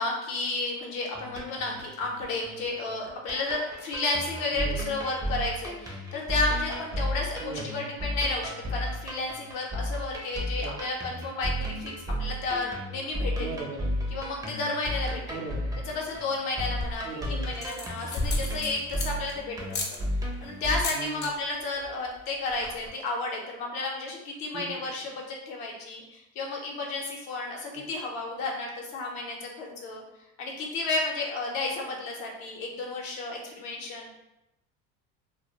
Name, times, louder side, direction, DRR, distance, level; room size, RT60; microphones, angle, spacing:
voice 1, 0.0-11.9 12.2-13.5 14.1-15.4 15.9-20.0 20.4-30.0 30.4-34.1, left 3 dB, 70° left, 0 dB, 0.8 m, -32 dB
sound 1, 1.1-20.8, equal, 10° right, 0.5 m, -34 dB
voice 2, 4.5-4.9 7.4-7.9 10.6-10.8 13.4-14.1 15.3-15.9 17.0-17.6 20.9-21.3 24.5-24.8, right 4 dB, 55° right, 2 dB, 0.6 m, -38 dB
sound 2, 16.6-17.1 17.5-19.3 19.7-20.0 20.7-21.3 21.6-21.9 22.2-22.3 22.5-22.9, left 3 dB, 35° left, 0.6 m, -33 dB
2.1 x 2.1 x 2.9 m, 0.90 s
supercardioid pair, 110°, 32 cm